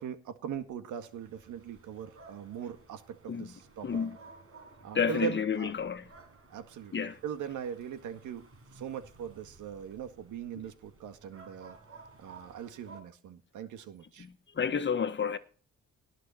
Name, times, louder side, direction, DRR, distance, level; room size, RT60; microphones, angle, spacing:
voice 1, 0.0-3.9 4.8-5.7 6.5-8.5 8.7-11.8 12.2-14.3, right 8 dB, 80° right, 1.9 m, -40 dB
sound 1, 0.9-13.0, right 3 dB, 50° right, 5.3 m, -55 dB
voice 2, 3.8-4.2 4.9-6.1 6.9-7.2 14.2-15.4, left 6 dB, 40° left, 1.6 m, -30 dB
18.5 x 6.8 x 4.3 m
cardioid pair, 90°, 30 cm